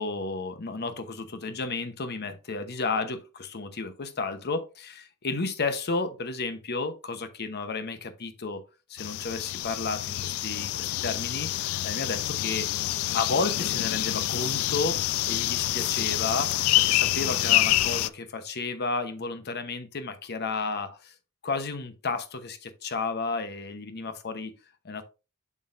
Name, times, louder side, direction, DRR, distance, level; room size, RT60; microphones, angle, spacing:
voice 1, 0.0-8.6 8.9-12.7 13.1-21.1 21.4-24.5 24.8-25.0, left 3 dB, 50° left, 0.9 m, -32 dB
sound 1, 9.0-18.1, left 15 dB, 65° left, 0.3 m, -27 dB
7.2 x 6.2 x 2.5 m
head